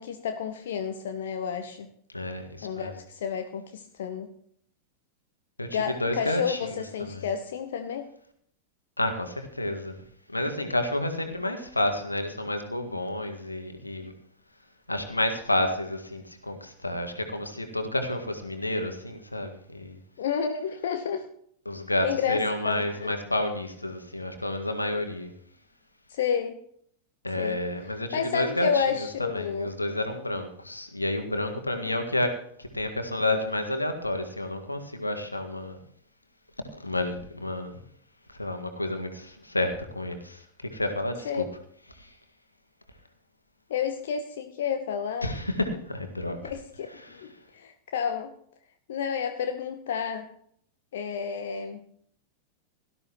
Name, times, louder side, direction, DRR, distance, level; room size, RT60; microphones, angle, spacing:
voice 1, 0.0-1.9 2.6-4.3 5.7-8.1 20.2-21.3 22.0-23.1 26.1-26.5 27.4-27.6 28.1-29.7 31.9-32.1 41.2-41.4 43.7-45.3 46.4-48.3 48.9-50.3 50.9-51.8, left 7 dB, 60° left, 7 dB, 1.0 m, -30 dB
voice 2, 2.1-2.9 5.6-6.7 7.0-7.2 9.0-9.9 10.3-14.1 14.9-20.0 21.6-25.3 27.2-35.8 36.8-37.8 38.4-40.4 40.7-41.4 42.0-42.1 45.2-46.4 47.0-47.2, left 1 dB, 85° left, 6 dB, 1.8 m, -30 dB
17.5 x 13.0 x 3.0 m, 0.65 s
figure-of-eight pair, 90°, 0 cm